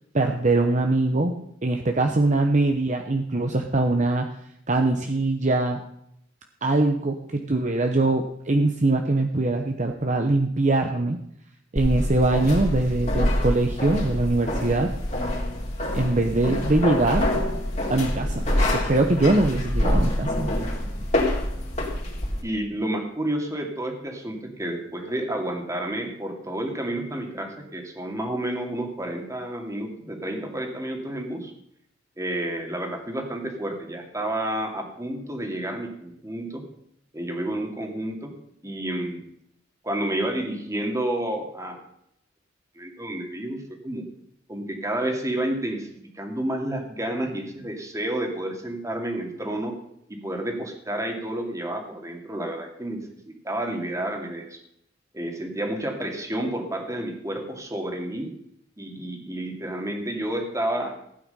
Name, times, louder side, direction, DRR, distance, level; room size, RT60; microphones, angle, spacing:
voice 1, 0.1-4.3 4.7-5.8 6.6-11.2 11.7-14.9 15.9-17.3 17.9-20.5, right 2 dB, 40° right, 4 dB, 0.9 m, -22 dB
sound 1, 11.8-22.4, left 1 dB, 35° left, 3.2 m, -26 dB
voice 2, 22.4-31.5 32.2-36.7 37.1-38.3 38.6-39.2 39.8-41.8 42.8-44.1 44.5-45.9 46.1-49.7 50.2-53.0 53.3-54.6 55.1-58.3 58.8-61.0, right 1 dB, 15° right, 3 dB, 2.3 m, -30 dB
15.5 x 9.2 x 5.5 m, 0.74 s
head